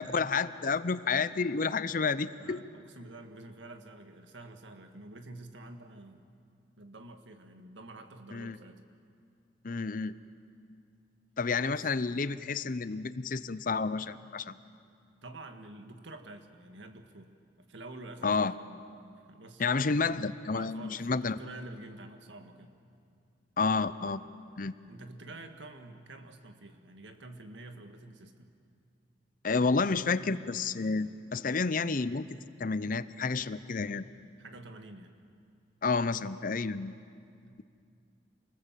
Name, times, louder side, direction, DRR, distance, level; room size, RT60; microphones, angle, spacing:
voice 1, 0.0-2.6 8.3-8.6 9.6-10.1 11.4-14.6 18.2-18.5 19.6-21.4 23.6-24.2 24.6-24.7 29.4-32.2 32.6-34.1 35.8-36.9, left 4 dB, 45° left, 15 dB, 0.6 m, -30 dB
voice 2, 2.4-6.3 6.8-8.8 11.6-11.9 15.2-17.3 17.6-18.7 19.3-19.6 20.5-22.8 24.9-28.5 34.4-35.1 37.5-37.6, right 2 dB, 80° right, 6 dB, 1.9 m, -48 dB
28.0 x 20.0 x 7.5 m, 2.4 s
head